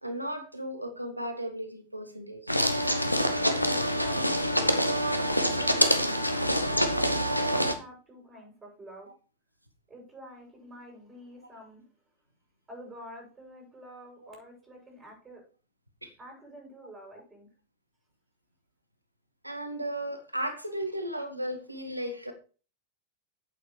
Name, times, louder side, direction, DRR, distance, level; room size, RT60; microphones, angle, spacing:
voice 1, 0.0-2.6 16.0-16.1 19.4-22.3, right 1 dB, 85° right, 7 dB, 1.6 m, -35 dB
sound 1, 2.5-7.7, equal, 90° left, 1.0 m, -26 dB
voice 2, 3.6-4.2 5.4-6.8 7.0-9.1 9.9-11.8 12.7-15.4 16.2-17.5, equal, 15° right, 1 dB, 6.4 m, -48 dB
8.6 x 7.7 x 4.7 m, 0.36 s
figure-of-eight pair, 90°, 0 cm